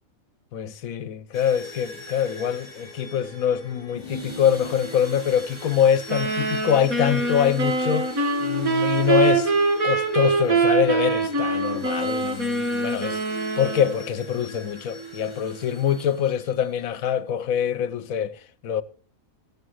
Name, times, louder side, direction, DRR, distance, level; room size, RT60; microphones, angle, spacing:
voice 1, 0.5-9.5 9.8-18.8, left 9 dB, 80° left, 1.2 m, -24 dB
sound 1, 1.3-17.0, right 1 dB, 25° left, 3.8 m, -39 dB
sound 2, 6.1-14.1, right 3 dB, 90° right, 2.5 m, -24 dB
15.0 x 6.7 x 6.2 m
omnidirectional pair, 1.5 m